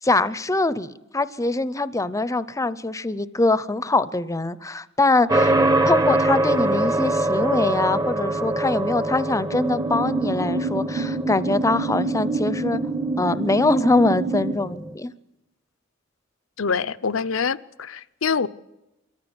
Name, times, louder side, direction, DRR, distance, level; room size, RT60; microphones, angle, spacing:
voice 1, 0.0-5.5 5.9-12.8 13.2-15.1, left 2 dB, 15° left, 0.6 m, -23 dB
sound 1, 5.3-14.9, right 1 dB, 20° right, 0.8 m, -25 dB
sound 2, 9.5-14.5, right 3 dB, 80° right, 2.5 m, -27 dB
voice 2, 16.6-18.5, left 5 dB, 70° left, 0.6 m, -25 dB
23.0 x 14.5 x 9.6 m
head